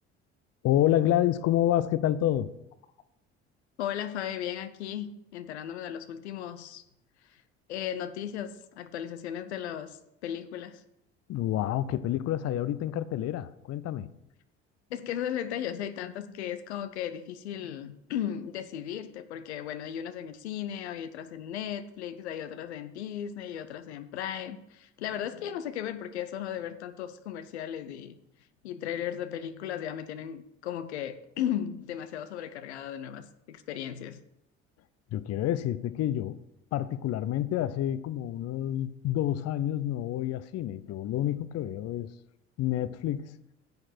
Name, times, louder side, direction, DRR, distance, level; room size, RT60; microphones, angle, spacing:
voice 1, 0.6-2.5 11.3-14.1 35.1-36.4 36.7-42.1 42.6-43.4, left 12 dB, 50° left, 0.6 m, -28 dB
voice 2, 3.8-6.8 7.7-10.8 14.9-28.1 28.6-34.2, left 10 dB, 85° left, 0.6 m, -36 dB
10.5 x 7.8 x 4.4 m
hypercardioid pair, 60°, 32 cm